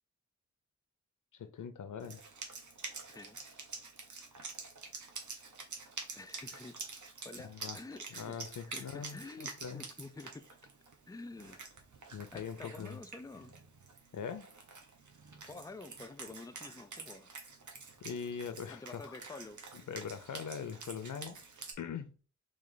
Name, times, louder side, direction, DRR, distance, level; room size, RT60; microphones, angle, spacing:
voice 1, 1.3-2.2 7.4-7.8 8.1-9.8 12.1-13.0 14.1-14.5 18.0-19.2 19.9-21.4 21.8-22.1, left 7 dB, 85° left, 0.5 m, -42 dB
Wind instrument woodwind instrument, 2.0-21.7, right 4 dB, 75° right, 0.9 m, -48 dB
voice 2, 3.1-3.4 6.1-6.8 7.2-10.5 11.1-11.6 12.3-13.5 15.4-17.3 18.7-19.6, left 3 dB, 10° left, 0.4 m, -49 dB
3.2 x 3.2 x 3.9 m
wide cardioid pair, 85°, 30 cm